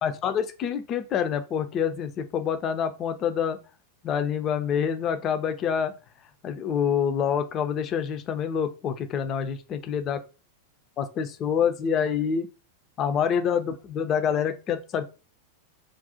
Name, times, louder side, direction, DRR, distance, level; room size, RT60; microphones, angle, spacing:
voice 1, 0.0-3.6 4.0-5.9 6.4-10.2 11.0-12.5 13.0-15.0, left 7 dB, 30° left, 8 dB, 0.3 m, -26 dB
2.4 x 2.0 x 2.7 m, 0.31 s
figure-of-eight pair, 90°, 0 cm